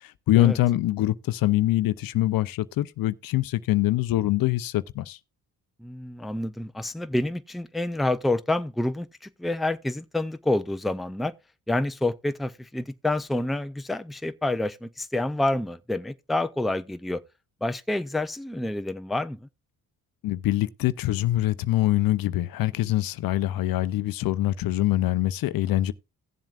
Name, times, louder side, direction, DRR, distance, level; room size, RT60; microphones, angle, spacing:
voice 1, 0.0-5.2 20.2-25.9, left 15 dB, 70° left, 0.6 m, -24 dB
voice 2, 5.8-9.1 9.4-11.3 11.7-17.2 17.6-19.5, left 2 dB, ahead, 0.4 m, -28 dB
17.0 x 7.4 x 2.4 m
cardioid pair, 80°, 36 cm